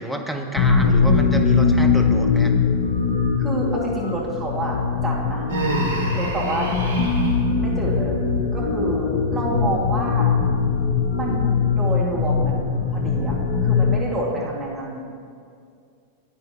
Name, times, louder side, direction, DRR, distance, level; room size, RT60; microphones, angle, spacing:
voice 1, 0.0-2.5, right 1 dB, 5° left, 4 dB, 0.9 m, -29 dB
sound 1, 0.5-14.0, left 5 dB, 55° left, 0.8 m, -21 dB
voice 2, 3.4-4.8 5.0-5.5 6.2-6.7 7.6-8.2 8.5-10.3 11.1-13.3 13.6-15.1, right 1 dB, 15° right, -5 dB, 2.1 m, -28 dB
Human voice, 5.5-7.4, right 2 dB, 75° right, 1.2 m, -27 dB
14.0 x 9.3 x 2.9 m, 2.3 s
figure-of-eight pair, 90°, 0 cm